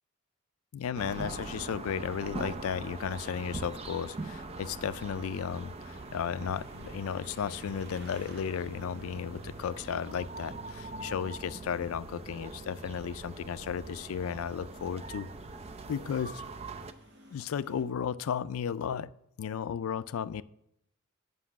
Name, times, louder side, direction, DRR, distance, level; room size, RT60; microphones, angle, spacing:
voice 1, 0.7-15.3 15.9-16.4 17.3-19.1 19.4-20.4, left 7 dB, 70° left, 17 dB, 0.4 m, -34 dB
sound 1, 1.0-16.9, right 2 dB, 30° right, 0.5 m, -42 dB
sound 2, 2.1-17.8, right 2 dB, 55° right, 1.4 m, -58 dB
7.9 x 5.4 x 7.2 m, 0.79 s
head